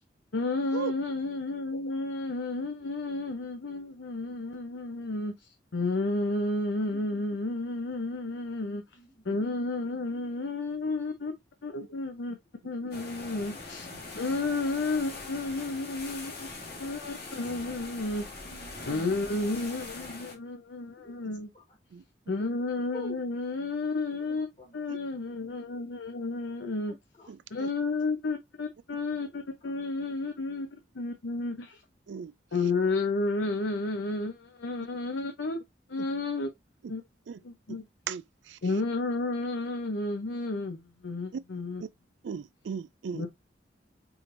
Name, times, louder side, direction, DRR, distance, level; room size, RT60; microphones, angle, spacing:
voice 1, 0.3-8.8 9.2-11.3 11.6-12.4 12.6-13.9 14.1-16.5 16.8-18.3 18.8-21.5 22.3-24.5 24.7-26.9 27.5-31.8 32.5-35.6 35.9-36.5 36.9-37.0 37.4-37.9 38.6-41.8 43.1-43.3, left 3 dB, 85° left, 0.7 m, -32 dB
voice 2, 8.9-9.2 12.2-12.4 18.4-19.5 21.0-21.1 21.5-21.6 22.9-23.2 24.1-24.8 26.8-27.3 29.3-29.7, equal, 35° left, 1.5 m, -50 dB
sound 1, 12.9-20.4, left 3 dB, 60° left, 1.6 m, -42 dB
voice 3, 27.3-27.7 32.1-32.3 36.0-36.1 36.8-36.9 37.3-37.4 37.7-37.8 38.1-38.6 41.3-41.4 41.8-41.9 42.2-43.2, right 7 dB, 75° right, 0.4 m, -38 dB
4.8 x 3.3 x 2.5 m
head